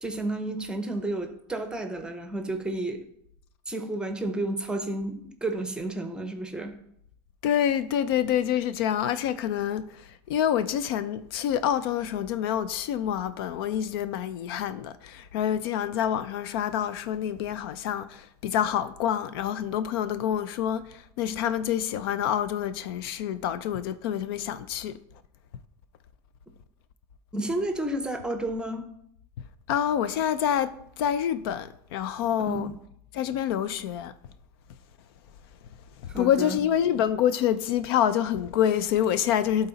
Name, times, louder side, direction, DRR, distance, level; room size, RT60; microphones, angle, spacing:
voice 1, 0.0-3.0 3.7-6.7 27.3-28.8 32.5-32.6 36.1-36.6, right 2 dB, 5° right, 0.8 m, -31 dB
voice 2, 7.4-24.9 29.7-32.7 33.1-34.1 36.2-39.7, left 10 dB, 75° left, 0.5 m, -27 dB
11.5 x 4.0 x 4.0 m
supercardioid pair, 135°, 12 cm